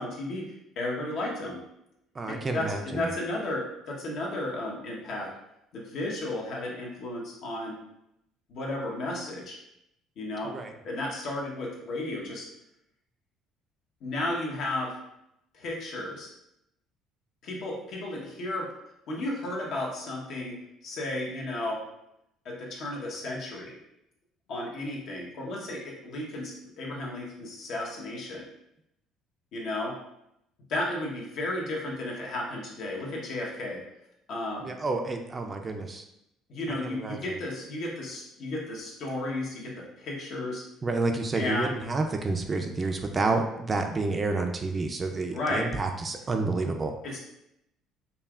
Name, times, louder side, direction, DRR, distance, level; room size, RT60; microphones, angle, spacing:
voice 1, 0.0-1.6 2.3-5.3 5.7-7.8 8.5-9.6 10.2-10.6 10.8-12.4 14.0-15.0 15.5-16.3 17.4-18.7 19.1-21.8 22.4-23.8 24.5-28.4 29.5-30.0 30.7-33.8 34.3-34.7 36.5-40.6 41.3-41.7 45.3-45.7 47.0-47.2, left 1 dB, 65° left, -2 dB, 1.1 m, -33 dB
voice 2, 2.1-3.1 10.4-10.7 34.6-36.0 36.8-37.3 40.8-46.9, right 3 dB, 25° right, 4 dB, 0.4 m, -29 dB
5.4 x 2.3 x 2.4 m, 0.81 s
cardioid pair, 115°, 0 cm